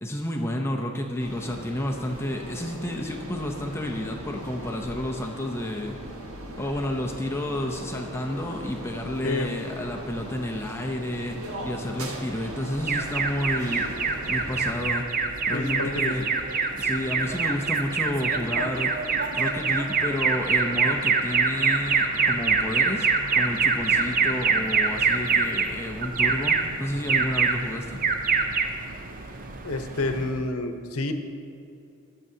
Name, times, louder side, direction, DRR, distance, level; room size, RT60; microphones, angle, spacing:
voice 1, 0.0-5.9 6.6-13.9 14.3-15.2 15.5-16.3 16.8-19.1 19.3-28.0, left 1 dB, 10° left, 1 dB, 0.6 m, -31 dB
sound 1, 1.2-14.7, right 1 dB, 80° right, 1.4 m, -39 dB
Alarm, 12.8-30.5, right 4 dB, 40° right, 0.6 m, -25 dB
voice 2, 15.5-16.3 29.6-31.1, left 2 dB, 75° left, 6 dB, 0.8 m, -29 dB
21.0 x 7.5 x 2.8 m, 2.6 s
head